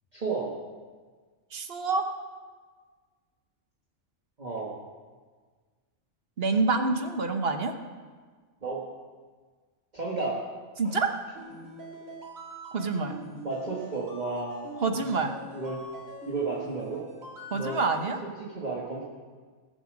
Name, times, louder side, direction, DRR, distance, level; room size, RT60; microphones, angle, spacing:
voice 1, 0.1-0.5 4.4-4.7 8.6-8.9 9.9-10.4 10.8-10.9 13.4-14.7 15.5-15.8 16.2-17.0 17.5-17.8 18.4-19.0, right 3 dB, 35° right, -5 dB, 1.7 m, -32 dB
voice 2, 1.5-2.1 6.4-7.7 10.8-11.1 12.7-13.2 14.8-15.4 17.5-18.2, right 3 dB, 50° right, 6 dB, 1.2 m, -27 dB
sound 1, 11.4-18.2, right 1 dB, 85° right, 2.8 m, -43 dB
19.5 x 7.1 x 6.3 m, 1.5 s
omnidirectional pair, 1.4 m